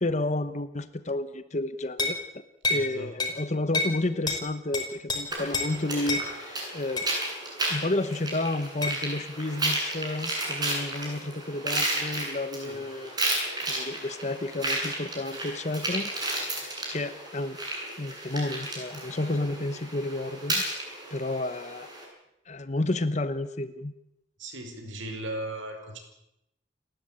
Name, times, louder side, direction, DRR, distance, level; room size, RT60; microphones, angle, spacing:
voice 1, 0.0-2.4 2.7-7.0 7.7-13.2 13.6-17.6 18.0-20.6 21.1-21.9 22.5-23.9, left 2 dB, 35° left, 12 dB, 1.0 m, -31 dB
sound 1, 2.0-2.2 2.6-2.9 3.2-3.4 3.7-4.0 4.3-4.4 4.7-5.2 5.5-5.7 6.1-6.3 7.0-7.1 8.8-9.0, left 2 dB, 20° left, 5.0 m, -27 dB
voice 2, 2.7-3.1 12.6-12.8 24.4-26.0, right 1 dB, 85° right, 6 dB, 4.9 m, -37 dB
sound 2, 5.3-22.0, right 1 dB, 20° right, 7.9 m, -33 dB
29.5 x 13.0 x 8.8 m, 0.86 s
head